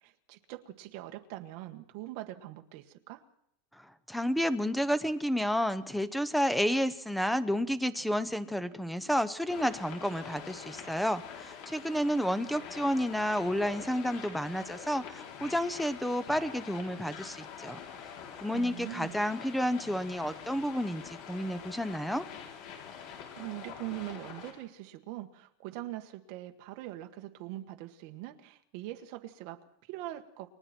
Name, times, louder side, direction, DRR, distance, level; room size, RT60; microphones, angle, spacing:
voice 1, 0.0-3.2 18.5-19.2 23.0-30.5, right 15 dB, 50° right, 6 dB, 1.7 m, -42 dB
voice 2, 3.7-17.8 18.4-22.3, equal, ahead, 13 dB, 0.9 m, -31 dB
sound 1, 9.5-24.5, left 7 dB, 45° left, 6.7 m, -45 dB
29.5 x 23.5 x 4.5 m, 0.73 s
supercardioid pair, 170°, 0 cm